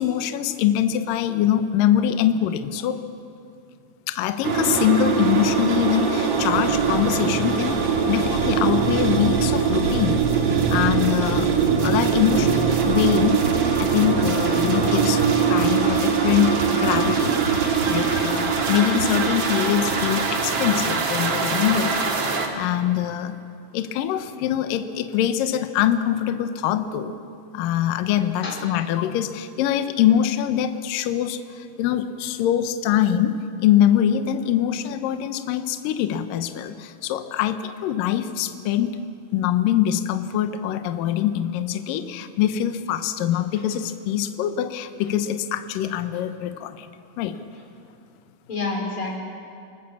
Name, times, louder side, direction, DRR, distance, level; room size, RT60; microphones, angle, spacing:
voice 1, 0.0-3.0 4.1-10.3 10.7-11.5 11.8-13.4 13.8-15.2 15.5-17.4 17.9-22.1 22.6-23.4 23.7-27.1 27.5-39.0 39.3-46.9 47.2-47.4, left 10 dB, 70° left, 9 dB, 2.2 m, -23 dB
sound 1, 4.4-22.5, right 6 dB, 45° right, 2.3 m, -22 dB
voice 2, 48.5-49.2, left 3 dB, 30° left, 0 dB, 4.7 m, -29 dB
29.0 x 19.5 x 7.3 m, 2.4 s
omnidirectional pair, 5.0 m